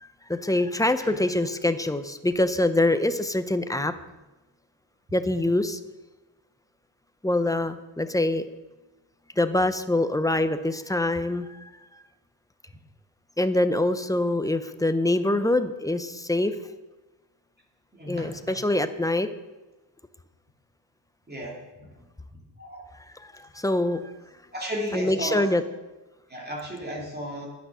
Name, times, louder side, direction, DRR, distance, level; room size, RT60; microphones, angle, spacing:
voice 1, 0.0-3.9 5.1-5.8 7.2-8.5 9.4-11.7 13.4-16.6 18.1-19.3 23.2-24.0 24.9-25.6, left 1 dB, 10° left, 10 dB, 0.5 m, -24 dB
voice 2, 17.9-18.5 21.3-21.6 21.9-22.0 22.6-22.8 24.5-25.5 26.3-27.5, equal, 20° right, -2 dB, 2.5 m, -34 dB
10.5 x 10.0 x 6.2 m, 1.1 s
wide cardioid pair, 150°, 46 cm